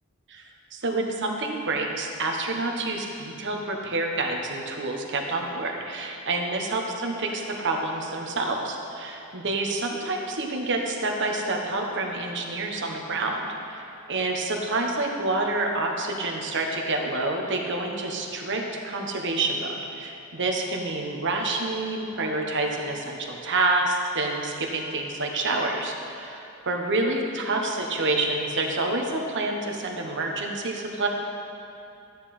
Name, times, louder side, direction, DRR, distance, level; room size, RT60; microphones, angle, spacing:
voice 1, 0.3-31.1, right 2 dB, 55° right, 1 dB, 1.3 m, -28 dB
13.5 x 9.6 x 4.3 m, 2.7 s
head